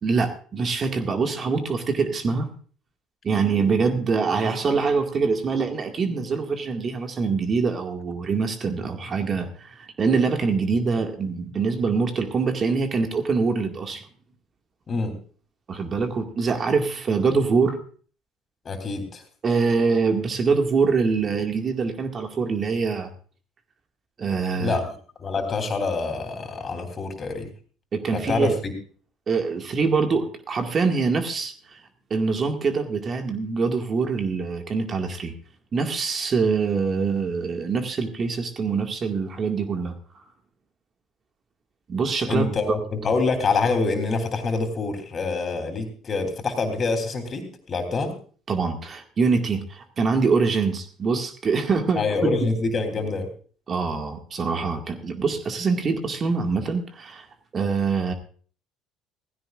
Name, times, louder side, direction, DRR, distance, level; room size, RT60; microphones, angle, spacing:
voice 1, 0.0-2.5 3.2-14.0 15.7-17.8 19.4-23.1 24.2-24.8 27.9-28.6 29.3-31.8 32.1-35.3 35.7-39.9 41.9-42.5 48.5-52.5 53.7-57.3 57.5-58.1, right 4 dB, 40° right, 5 dB, 2.0 m, -24 dB
voice 2, 18.7-19.2 24.6-24.8 25.2-27.5 28.1-28.7 42.2-48.1 52.0-53.3, left 3 dB, 40° left, 6 dB, 3.4 m, -26 dB
16.5 x 15.5 x 2.5 m, 0.42 s
hypercardioid pair, 65°, 0 cm